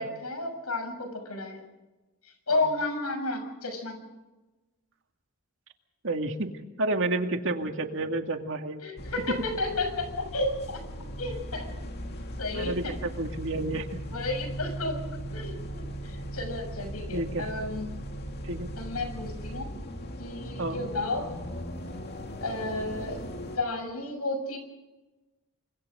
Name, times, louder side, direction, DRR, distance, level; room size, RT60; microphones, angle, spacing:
voice 1, 0.0-1.6 2.5-4.0 8.8-10.8 11.2-11.7 12.4-13.0 14.1-17.9 18.8-19.8 20.2-21.3 22.4-23.3 23.5-24.6, left 2 dB, 90° left, 6 dB, 6.7 m, -32 dB
voice 2, 6.0-8.8 9.3-9.4 12.6-14.0 17.1-17.5 18.4-18.7 20.6-20.8, right 2 dB, 60° right, 5 dB, 2.2 m, -30 dB
sound 1, 9.0-23.6, equal, 45° left, 2.4 m, -38 dB
27.5 x 25.5 x 3.8 m, 1.1 s
head